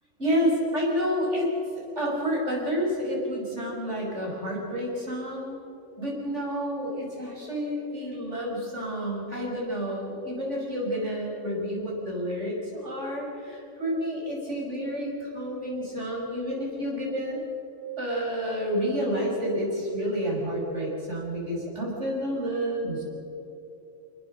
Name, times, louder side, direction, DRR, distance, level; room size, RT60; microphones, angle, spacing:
voice 1, 0.2-1.5 2.0-5.6 6.0-17.4 18.0-23.1, equal, 70° right, -2 dB, 6.3 m, -29 dB
26.0 x 20.0 x 6.6 m, 2.9 s
omnidirectional pair, 1.3 m